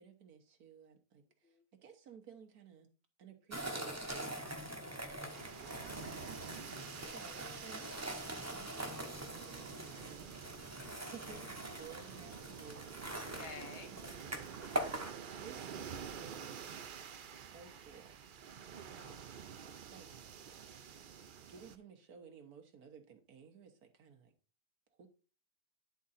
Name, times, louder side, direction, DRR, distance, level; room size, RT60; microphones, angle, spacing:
voice 1, 0.0-2.9 3.2-5.0 6.9-10.4 10.9-13.0 13.9-15.0 15.4-17.0 17.3-18.2 19.6-20.1 21.5-24.3 25.0-25.1, right 6 dB, 85° right, 5 dB, 1.7 m, -56 dB
sound 1, 3.5-15.1, right 1 dB, 15° right, 0.7 m, -43 dB
sound 2, 5.3-21.8, right 7 dB, 60° right, 0.5 m, -49 dB
voice 2, 5.4-6.3 13.3-13.9 18.7-19.2, left 5 dB, 55° left, 8 dB, 0.9 m, -53 dB
10.0 x 3.7 x 4.1 m, 0.35 s
omnidirectional pair, 1.5 m